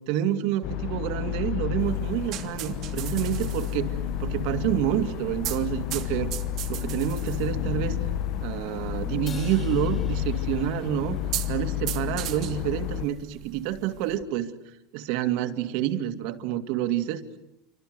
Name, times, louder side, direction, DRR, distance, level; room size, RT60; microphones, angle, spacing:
voice 1, 0.1-3.9 4.2-6.3 6.7-8.0 8.4-11.2 11.5-14.5 14.9-17.2, right 11 dB, 60° right, 9 dB, 2.5 m, -28 dB
sound 1, 0.6-13.1, left 13 dB, 50° left, 1.0 m, -31 dB
sound 2, 1.8-14.2, right 12 dB, 45° right, 2.5 m, -39 dB
Crash cymbal, 9.3-11.6, left 5 dB, 25° left, 5.8 m, -48 dB
28.5 x 25.5 x 8.0 m, 0.84 s
supercardioid pair, 145°, 0 cm